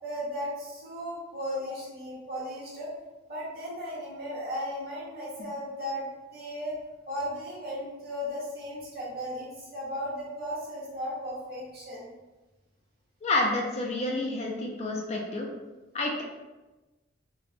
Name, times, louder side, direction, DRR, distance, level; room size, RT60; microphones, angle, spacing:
voice 1, 0.0-2.9 3.3-6.0 6.3-6.7 7.1-12.1, equal, 50° right, -6 dB, 0.9 m, -36 dB
voice 2, 13.2-15.5 15.9-16.2, left 2 dB, 35° left, -1 dB, 0.3 m, -29 dB
2.4 x 2.1 x 3.3 m, 1.1 s
head